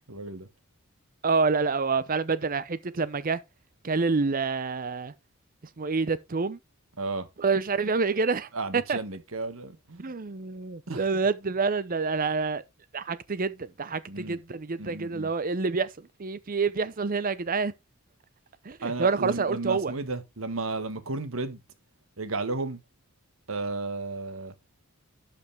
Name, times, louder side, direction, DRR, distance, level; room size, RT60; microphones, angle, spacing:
voice 1, 0.1-0.5 7.0-7.3 8.5-10.1 10.9-11.0 14.1-14.4 14.8-15.3 18.8-21.6 22.2-22.8 23.5-24.5, right 3 dB, 85° right, 1.4 m, -33 dB
voice 2, 1.2-3.4 3.8-5.1 5.8-6.6 7.4-9.0 10.0-12.6 12.9-17.7 18.6-19.9, right 4 dB, 45° right, 0.7 m, -27 dB
12.0 x 5.3 x 3.5 m
head